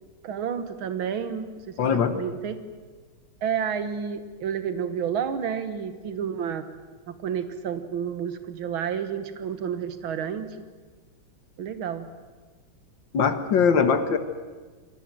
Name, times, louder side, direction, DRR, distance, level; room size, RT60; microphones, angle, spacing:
voice 1, 0.2-2.6 3.4-6.6 7.1-10.6 11.6-12.1, right 8 dB, 75° right, 10 dB, 2.2 m, -30 dB
voice 2, 1.8-2.1 13.1-14.2, left 6 dB, 65° left, 9 dB, 2.2 m, -21 dB
28.0 x 22.0 x 7.6 m, 1.4 s
omnidirectional pair, 2.3 m